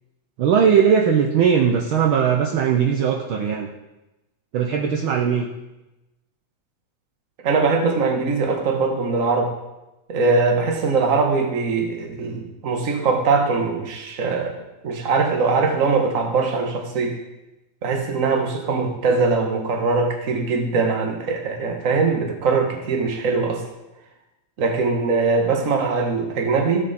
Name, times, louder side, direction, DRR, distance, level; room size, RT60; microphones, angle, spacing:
voice 1, 0.4-3.7 4.5-5.5, right 7 dB, 75° right, 2 dB, 1.2 m, -19 dB
voice 2, 7.4-9.5 10.1-14.6 14.8-17.2 17.8-23.7 24.6-26.8, right 4 dB, 40° right, 3 dB, 1.2 m, -21 dB
16.5 x 7.6 x 4.3 m, 1.0 s
omnidirectional pair, 3.3 m